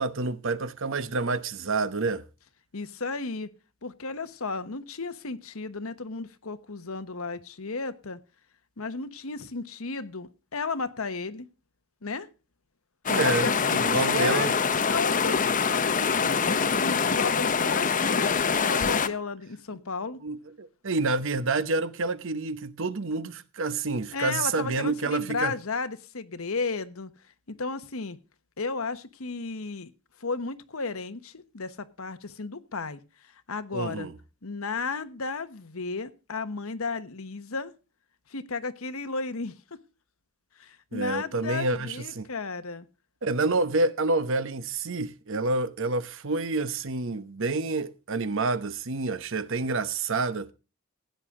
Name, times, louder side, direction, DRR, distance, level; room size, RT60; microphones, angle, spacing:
voice 1, 0.0-2.2 13.1-14.5 20.2-25.5 33.7-34.1 40.9-42.3 43.2-50.5, right 3 dB, 60° right, 0.9 m, -28 dB
voice 2, 2.7-3.5 3.8-8.2 8.8-11.5 12.0-12.3 13.2-14.5 14.9-20.2 24.1-27.1 27.5-28.2 28.6-29.9 30.2-34.1 34.4-37.7 38.3-39.6 40.6-42.9, left 4 dB, 75° left, 1.2 m, -34 dB
sound 1, 13.1-19.1, left 5 dB, 35° left, 0.8 m, -24 dB
15.5 x 9.4 x 3.7 m
head